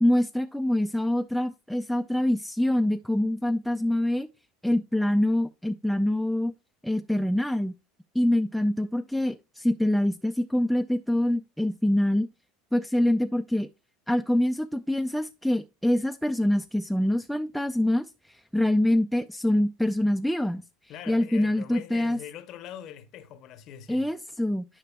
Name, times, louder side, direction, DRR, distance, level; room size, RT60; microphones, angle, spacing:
voice 1, 0.0-4.3 4.6-6.5 6.8-7.7 8.1-12.3 12.7-13.7 14.1-20.6 21.1-22.2 23.9-24.7, left 1 dB, ahead, 0.3 m, -25 dB
voice 2, 20.9-24.1, left 10 dB, 50° left, 0.7 m, -43 dB
9.9 x 5.0 x 2.2 m
supercardioid pair, 110°, 0 cm